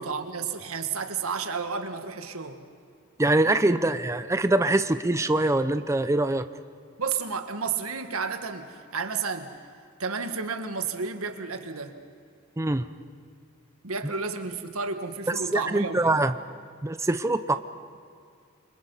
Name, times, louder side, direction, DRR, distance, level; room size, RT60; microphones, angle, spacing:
voice 1, 0.0-2.6 7.0-9.5 10.0-12.0 13.8-16.3, right 5 dB, 80° right, 7 dB, 1.7 m, -32 dB
voice 2, 3.2-6.5 12.6-12.8 15.5-16.3 16.8-17.6, right 2 dB, 15° right, 10 dB, 0.6 m, -23 dB
28.5 x 25.0 x 5.6 m, 2.2 s
head